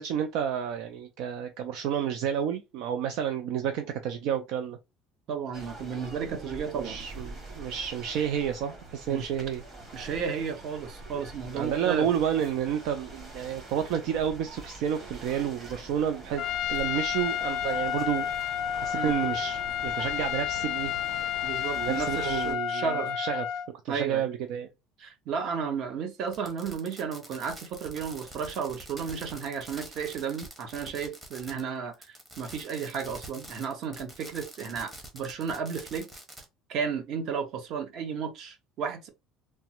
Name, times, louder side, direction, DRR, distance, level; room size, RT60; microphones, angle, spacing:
voice 1, 0.0-4.8 6.8-9.6 11.5-16.4 16.7-18.3 18.8-20.9 21.7-23.4 23.8-24.7, right 9 dB, 65° right, 0.4 m, -30 dB
voice 2, 5.3-7.0 9.1-9.3 9.9-12.1 18.9-19.2 21.4-23.1 23.9-24.2 25.0-36.1 36.7-39.1, right 6 dB, 50° right, 0.8 m, -33 dB
sound 1, 5.5-22.5, right 2 dB, 30° right, 1.2 m, -45 dB
Trumpet, 16.4-23.7, left 10 dB, 55° left, 0.3 m, -31 dB
Fireworks, 26.3-31.7 31.9-36.4, right 1 dB, 10° right, 0.8 m, -46 dB
3.3 x 2.0 x 2.9 m
cardioid pair, 145°, 0 cm